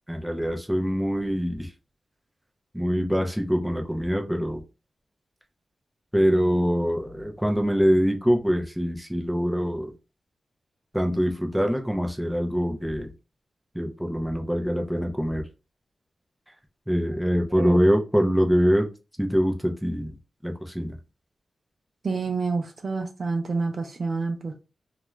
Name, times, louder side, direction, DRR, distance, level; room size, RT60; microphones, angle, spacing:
voice 1, 0.1-1.7 2.7-4.6 6.1-9.9 10.9-13.1 13.7-15.5 16.9-18.9 19.2-20.1 20.4-21.0, equal, ahead, 0.5 m, -24 dB
voice 2, 22.0-24.6, right 4 dB, 55° right, 0.5 m, -28 dB
2.4 x 2.2 x 3.0 m
wide cardioid pair, 85°, 0 cm